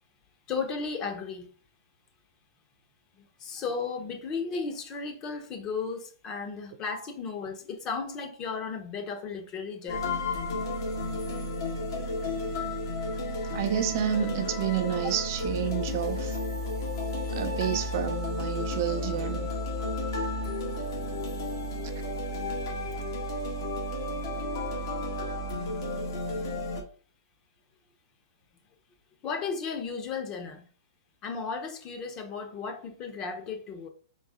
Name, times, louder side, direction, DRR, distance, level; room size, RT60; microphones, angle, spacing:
voice 1, 0.5-1.5 3.2-10.3 29.2-30.7 31.2-33.9, left 5 dB, 25° left, 0.8 m, -35 dB
sound 1, 9.9-26.8, left 1 dB, 65° left, 1.3 m, -32 dB
voice 2, 13.5-16.4 17.3-19.5, right 10 dB, 50° right, 0.5 m, -30 dB
4.0 x 2.7 x 3.6 m
hypercardioid pair, 145°, 2 cm